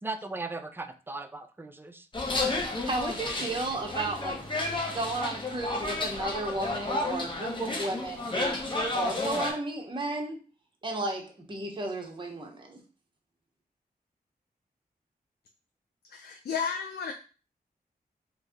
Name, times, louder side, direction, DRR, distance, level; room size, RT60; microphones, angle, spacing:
voice 1, 0.0-2.1, right 3 dB, 15° right, 0.4 m, -37 dB
sound 1, 2.1-9.5, left 2 dB, 30° left, 1.0 m, -32 dB
voice 2, 2.8-4.5 4.9-8.6 8.9-10.4 10.8-12.8, right 2 dB, 30° right, 1.0 m, -33 dB
voice 3, 16.1-17.1, left 6 dB, 85° left, 0.4 m, -32 dB
3.1 x 2.6 x 3.6 m
cardioid pair, 70°, 17 cm